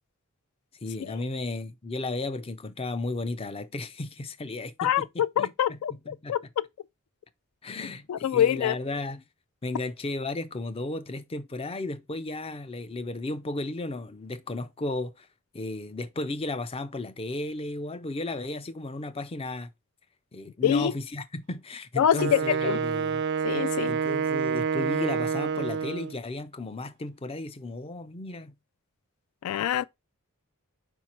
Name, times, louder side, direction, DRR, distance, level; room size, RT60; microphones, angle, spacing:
voice 1, 0.8-6.4 7.6-9.2 9.6-15.3 15.5-19.7 20.3-23.2 23.9-28.6, left 2 dB, 25° left, 0.5 m, -34 dB
voice 2, 4.8-6.7 8.1-8.8 20.6-20.9 22.0-22.8 23.4-23.9 29.4-29.8, left 9 dB, 80° left, 0.3 m, -25 dB
Wind instrument woodwind instrument, 22.1-26.2, right 6 dB, 50° right, 0.3 m, -28 dB
4.7 x 4.5 x 4.3 m
head